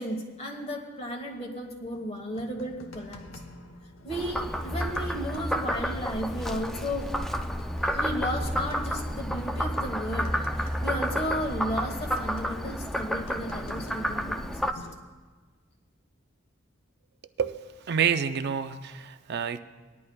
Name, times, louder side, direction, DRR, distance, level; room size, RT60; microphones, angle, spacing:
voice 1, 0.0-3.2 4.0-7.1 7.9-14.9, equal, 35° left, 2 dB, 1.3 m, -34 dB
sound 1, 1.9-15.0, left 2 dB, 70° left, 1.0 m, -47 dB
Frog, 4.1-14.7, equal, ahead, 0.4 m, -30 dB
voice 2, 17.8-19.6, right 7 dB, 55° right, 10 dB, 0.5 m, -28 dB
19.5 x 11.0 x 2.3 m, 1.4 s
head